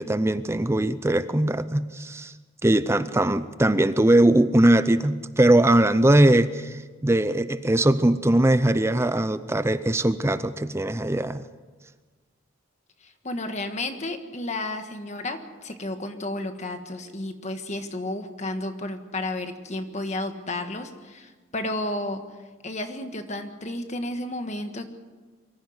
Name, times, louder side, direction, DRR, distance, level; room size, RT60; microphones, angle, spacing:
voice 1, 0.0-2.3 2.6-11.4, right 1 dB, 15° right, 13 dB, 0.5 m, -21 dB
voice 2, 13.0-22.2 22.6-24.9, left 2 dB, 35° left, 7 dB, 1.6 m, -32 dB
23.5 x 15.0 x 8.0 m, 1.4 s
head